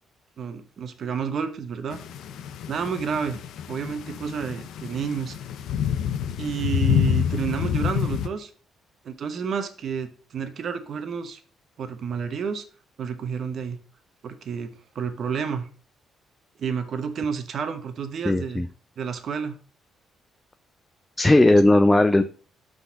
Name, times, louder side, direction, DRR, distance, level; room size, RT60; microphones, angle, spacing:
voice 1, 0.4-2.0 2.7-3.4 3.7-5.4 6.4-8.5 9.0-11.4 11.8-12.6 13.0-13.8 14.2-15.7 16.6-18.6 19.0-19.6, right 6 dB, 60° right, 9 dB, 0.9 m, -30 dB
sound 1, 1.9-8.3, left 9 dB, 80° left, 0.6 m, -27 dB
voice 2, 18.2-18.7 21.2-22.2, left 2 dB, 15° left, 9 dB, 0.4 m, -17 dB
5.9 x 4.0 x 5.2 m, 0.40 s
cardioid pair, 90°, 0 cm